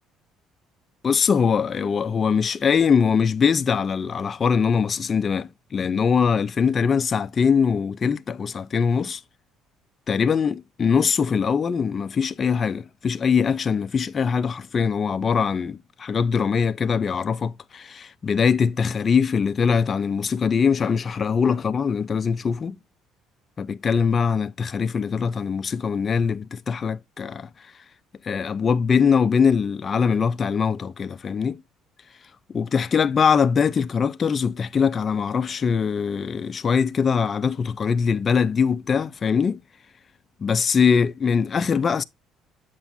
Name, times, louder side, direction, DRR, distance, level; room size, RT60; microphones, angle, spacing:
voice 1, 1.0-9.2 10.1-22.8 23.6-27.5 28.2-31.6 32.5-39.6 40.4-42.0, left 6 dB, 35° left, 0.5 m, -22 dB
7.9 x 7.5 x 2.6 m
cardioid pair, 115°, 0 cm